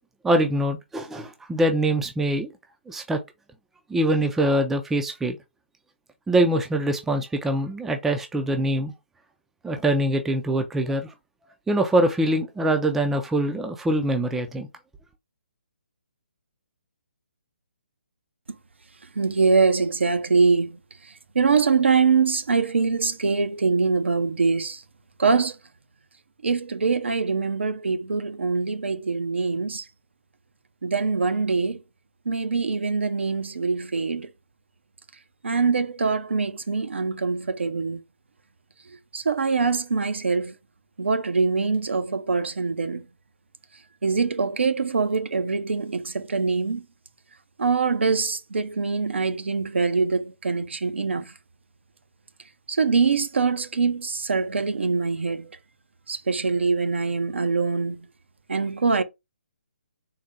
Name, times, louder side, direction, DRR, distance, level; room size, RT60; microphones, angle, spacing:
voice 1, 0.2-2.5 2.9-3.2 3.9-5.4 6.3-8.9 9.6-11.1 11.7-14.7, right 1 dB, 5° right, 0.3 m, -23 dB
voice 2, 19.2-20.8 21.3-24.8 25.2-25.6 26.4-29.8 30.8-31.8 32.3-34.3 35.4-38.0 39.1-40.5 41.0-43.0 44.0-46.8 47.6-51.3 52.7-55.5 56.1-58.1 58.5-59.0, right 4 dB, 75° right, 0.6 m, -23 dB
4.0 x 2.1 x 3.6 m
figure-of-eight pair, 145°, 6 cm